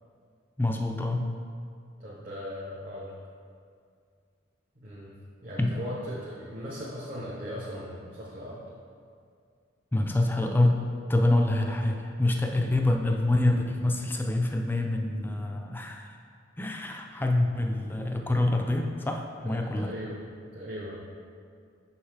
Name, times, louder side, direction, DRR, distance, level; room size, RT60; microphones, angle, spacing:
voice 1, 0.6-1.2 5.6-5.7 9.9-16.1 16.6-19.9, left 2 dB, 10° left, 3 dB, 0.4 m, -26 dB
voice 2, 2.0-3.1 4.7-5.2 5.4-8.6 11.6-11.8 19.4-20.2 20.5-21.0, equal, 45° right, -7 dB, 0.9 m, -38 dB
6.3 x 5.6 x 3.3 m, 2.3 s
head